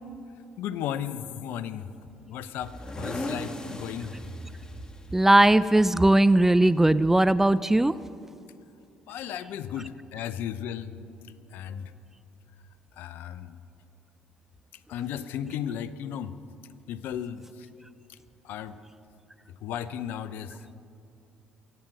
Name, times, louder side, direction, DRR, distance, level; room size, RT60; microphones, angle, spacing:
voice 1, 0.6-1.9 2.3-4.2 9.1-11.0 11.2-11.9 12.9-13.6 14.9-16.4 16.9-17.7 18.1-18.2 18.4-18.8 19.5-20.7, left 9 dB, 70° left, 14 dB, 0.7 m, -35 dB
sound 1, 2.6-7.6, left 1 dB, 20° left, 1.8 m, -39 dB
voice 2, 5.1-8.0, right 1 dB, 10° right, 16 dB, 0.4 m, -19 dB
24.0 x 9.0 x 6.2 m, 2.5 s
hypercardioid pair, 60°, 3 cm